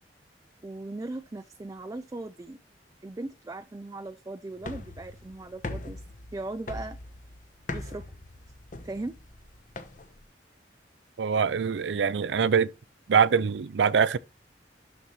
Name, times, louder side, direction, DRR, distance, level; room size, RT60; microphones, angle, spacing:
voice 1, 0.6-2.6 3.0-6.0 6.3-7.0 7.7-8.0 8.8-9.2, right 2 dB, 20° right, 0.4 m, -38 dB
sound 1, 4.6-10.2, left 2 dB, 50° left, 1.0 m, -41 dB
voice 2, 11.2-12.7 13.1-14.2, right 6 dB, 80° right, 0.4 m, -23 dB
12.0 x 4.1 x 3.1 m
head